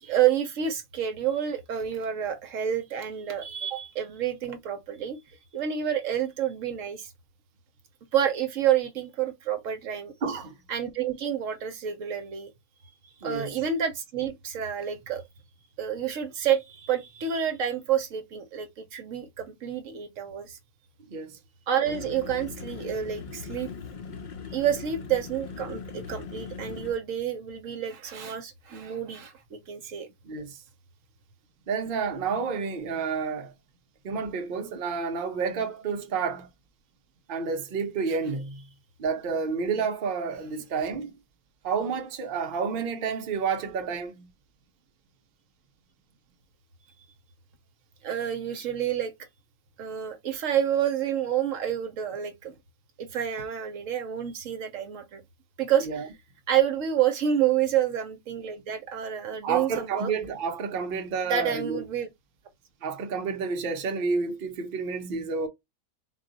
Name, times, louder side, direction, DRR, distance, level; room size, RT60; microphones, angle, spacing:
voice 1, 0.0-5.2 5.5-7.1 8.1-10.1 10.7-12.5 13.2-15.2 15.8-20.6 21.7-23.7 24.5-30.1 38.1-38.2 48.0-49.1 49.8-52.5 53.0-55.2 55.6-56.1 56.5-60.1 61.3-62.1, right 9 dB, 70° right, 1.0 m, -28 dB
voice 2, 10.2-10.5 13.2-13.6 21.1-21.4 30.2-30.6 31.7-33.5 34.0-36.5 37.3-38.6 39.0-41.2 41.6-44.3 55.9-56.0 59.4-61.8 62.8-65.5, right 5 dB, 45° right, 0.8 m, -30 dB
sound 1, 21.9-26.9, left 5 dB, 90° left, 0.4 m, -40 dB
4.1 x 2.3 x 3.8 m
omnidirectional pair, 1.5 m